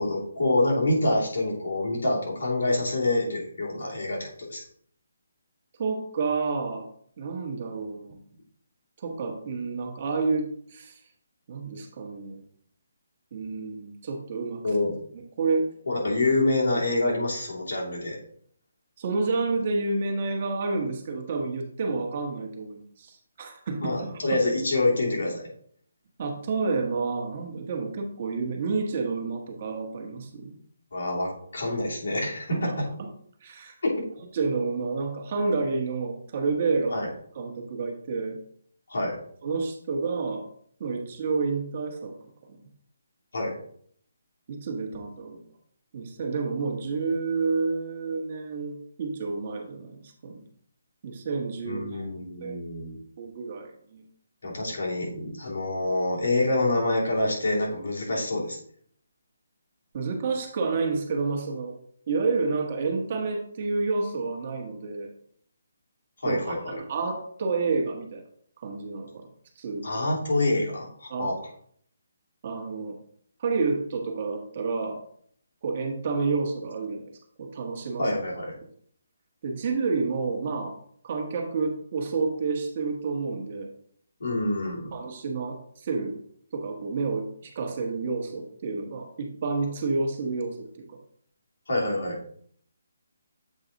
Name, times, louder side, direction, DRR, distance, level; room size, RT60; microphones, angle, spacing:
voice 1, 0.0-4.6 14.6-15.0 15.9-18.2 23.8-25.5 30.9-32.9 33.8-33.9 36.9-37.1 38.9-39.2 43.3-43.6 51.6-53.0 54.4-58.6 66.2-66.7 69.8-71.4 78.0-78.5 84.2-84.9 91.7-92.2, left 2 dB, 80° left, -4 dB, 2.9 m, -26 dB
voice 2, 5.8-6.9 7.2-8.2 9.0-11.0 11.5-12.4 13.3-14.6 15.4-15.7 19.0-24.2 26.2-30.6 32.5-32.7 33.0-33.1 33.4-33.7 34.3-37.0 37.3-38.4 39.4-40.5 40.8-42.1 44.5-45.4 45.9-50.4 51.0-52.1 52.4-52.6 53.2-54.0 59.9-61.8 62.1-65.1 66.2-68.2 68.6-69.2 69.6-69.8 71.1-71.3 72.4-73.0 73.4-75.0 75.6-77.1 77.4-78.1 79.4-80.8 81.0-83.7 84.9-86.2 86.5-91.0, right 4 dB, 35° right, 2 dB, 1.1 m, -29 dB
7.5 x 4.0 x 3.9 m, 0.62 s
hypercardioid pair, 170°, 0 cm